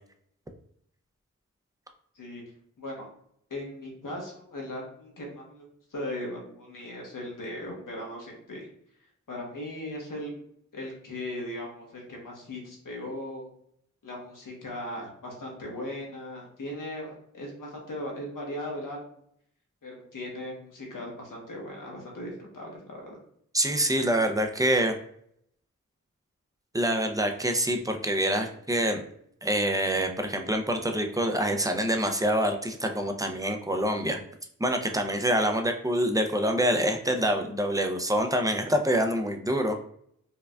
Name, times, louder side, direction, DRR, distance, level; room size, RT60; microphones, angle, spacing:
voice 1, 3.5-8.7 9.3-10.4 10.7-13.5 14.0-19.0 19.8-23.2, left 1 dB, 85° left, -1 dB, 1.0 m, -38 dB
voice 2, 23.5-24.9 26.7-29.0 29.4-34.2 34.6-39.8, right 1 dB, 10° right, 5 dB, 0.5 m, -26 dB
4.5 x 2.4 x 2.3 m, 0.68 s
cardioid pair, 45°, 32 cm